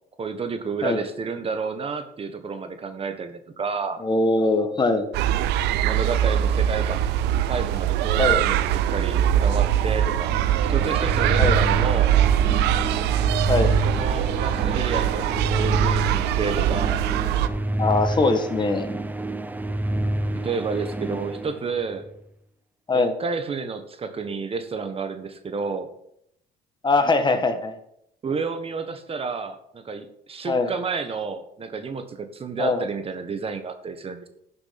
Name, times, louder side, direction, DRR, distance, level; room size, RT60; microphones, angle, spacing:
voice 1, 0.2-4.0 5.8-7.1 7.4-10.3 10.7-12.1 13.8-17.0 20.3-22.1 22.9-25.9 28.2-34.3, right 5 dB, 35° right, 8 dB, 1.3 m, -30 dB
voice 2, 4.0-5.1 8.2-8.4 11.4-11.6 13.5-13.7 17.8-18.9 22.9-23.1 26.8-27.7 30.4-30.7 32.6-32.8, left 3 dB, 25° left, 7 dB, 1.6 m, -21 dB
sound 1, 5.1-17.5, right 11 dB, 90° right, 0.7 m, -22 dB
sound 2, 10.2-22.1, right 1 dB, 10° right, 0.7 m, -29 dB
11.5 x 7.0 x 6.0 m, 0.74 s
cardioid pair, 110°, 17 cm